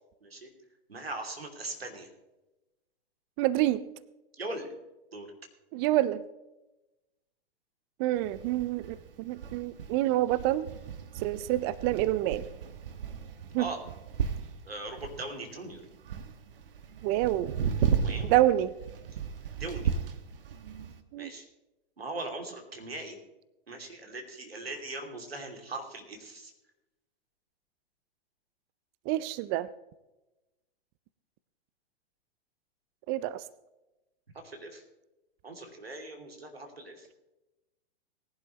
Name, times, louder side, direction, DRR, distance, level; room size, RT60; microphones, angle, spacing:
voice 1, 0.9-2.1 4.4-4.7 5.1-5.3 13.6-13.8 14.7-15.8 18.0-18.5 19.6-19.9 21.1-21.4 22.0-23.2 23.7-26.5 34.3-34.8 35.4-37.1, right 2 dB, 85° right, 3 dB, 2.9 m, -40 dB
voice 2, 3.4-3.9 5.7-6.2 8.0-10.7 11.2-12.4 13.5-13.7 17.0-17.6 18.3-18.7 21.1-21.3 29.1-29.7 33.1-33.4, right 15 dB, 25° right, 18 dB, 0.3 m, -27 dB
sound 1, 8.1-21.0, right 7 dB, 65° right, 1.2 m, -35 dB
19.5 x 11.0 x 3.1 m, 1.0 s
figure-of-eight pair, 110°, 30 cm